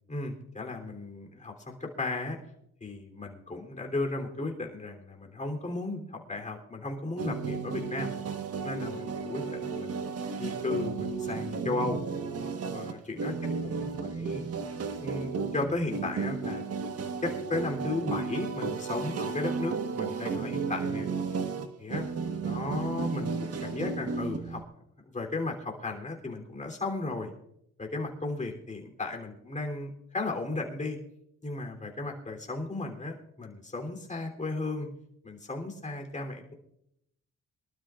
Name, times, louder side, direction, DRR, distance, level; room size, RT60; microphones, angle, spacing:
voice 1, 0.1-2.4 2.8-8.1 8.6-12.0 12.7-13.3 13.6-14.5 15.0-16.6 17.2-21.1 21.8-22.0 22.4-24.6 25.1-27.3 27.8-31.0 31.4-34.9 35.2-36.5, left 2 dB, 25° left, 1 dB, 3.4 m, -35 dB
sound 1, 7.2-24.6, right 5 dB, 50° right, 1.4 m, -33 dB
24.0 x 12.5 x 2.5 m, 0.78 s
cardioid pair, 90°, 30 cm